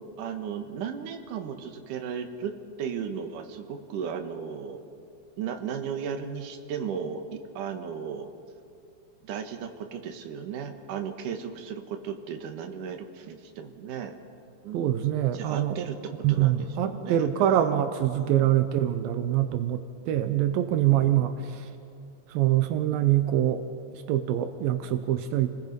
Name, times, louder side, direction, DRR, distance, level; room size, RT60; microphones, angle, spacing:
voice 1, 0.0-2.5 2.8-4.8 5.4-8.3 9.2-14.1 14.6-15.0 15.3-17.5 18.1-18.6 21.0-21.4, right 7 dB, 65° right, 5 dB, 2.2 m, -35 dB
voice 2, 14.7-15.8 16.2-21.7 22.3-23.6 23.9-25.5, right 12 dB, 85° right, 8 dB, 2.0 m, -24 dB
30.0 x 20.5 x 5.4 m, 2.6 s
omnidirectional pair, 5.3 m